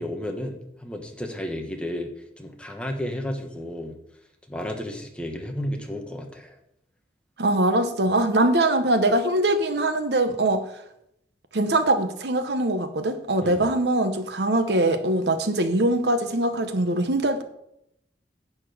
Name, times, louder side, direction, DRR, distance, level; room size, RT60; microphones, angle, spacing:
voice 1, 0.0-2.1 2.4-3.9 4.5-6.6 13.4-13.7, left 1 dB, 5° left, 1.1 m, -32 dB
voice 2, 7.4-10.6 11.5-17.4, right 1 dB, 70° right, 1.0 m, -22 dB
10.5 x 4.4 x 7.8 m
head